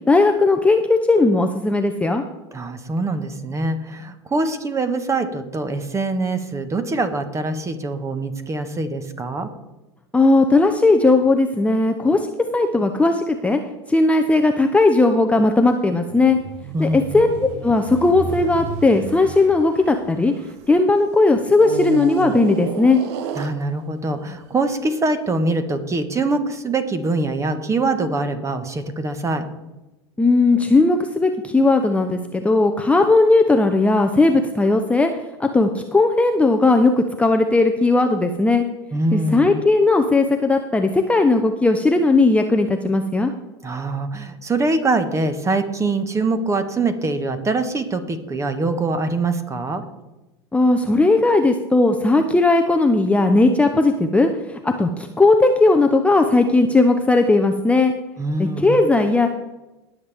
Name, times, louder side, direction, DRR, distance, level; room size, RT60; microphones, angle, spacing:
voice 1, 0.1-2.2 10.1-12.2 12.5-13.6 13.9-16.4 16.8-20.3 20.7-23.0 30.2-35.1 35.4-38.6 39.1-43.3 50.5-57.9 58.4-59.3, left 3 dB, 10° left, 5 dB, 0.7 m, -17 dB
voice 2, 2.5-9.5 16.7-17.2 23.3-29.5 38.9-39.5 43.6-49.8 58.2-58.9, right 2 dB, 20° right, 10 dB, 1.4 m, -23 dB
sound 1, 16.1-20.8 21.5-24.1 24.7-24.9, right 7 dB, 65° right, 1.0 m, -32 dB
20.0 x 7.3 x 3.5 m, 1.0 s
hypercardioid pair, 95°, 15 cm